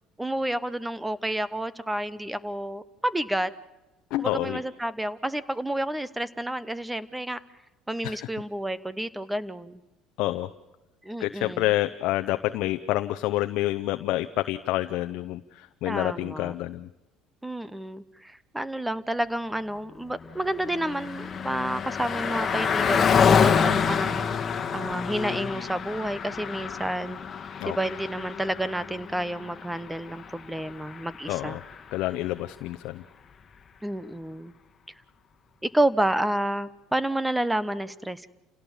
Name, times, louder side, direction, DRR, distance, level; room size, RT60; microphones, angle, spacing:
voice 1, 0.2-3.5 4.2-7.4 7.9-9.8 11.0-11.7 15.9-16.5 17.4-27.2 27.6-31.6 33.8-34.5 35.6-38.3, right 1 dB, 5° right, 17 dB, 0.9 m, -30 dB
voice 2, 4.1-4.6 8.0-8.3 10.2-10.5 11.2-16.9 27.6-27.8 31.3-31.6 31.9-33.0, left 16 dB, 70° left, 9 dB, 0.7 m, -28 dB
Car passing by, 20.2-31.9, left 6 dB, 35° left, 1.7 m, -27 dB
28.5 x 17.0 x 7.3 m, 1.1 s
supercardioid pair, 110°, 0 cm